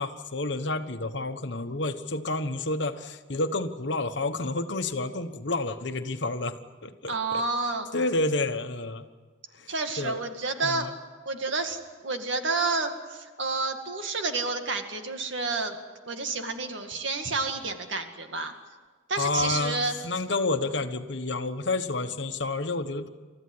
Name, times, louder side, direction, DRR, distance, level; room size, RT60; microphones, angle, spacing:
voice 1, 0.0-6.5 6.8-7.4 7.9-9.1 9.5-10.2 10.6-10.9 19.2-19.8 20.0-23.1, left 2 dB, 60° left, 7 dB, 1.3 m, -29 dB
voice 2, 7.1-7.9 9.7-10.9 11.3-15.8 16.1-18.5 19.1-19.9, right 3 dB, 70° right, 5 dB, 2.2 m, -30 dB
29.0 x 14.0 x 9.7 m, 1.4 s
head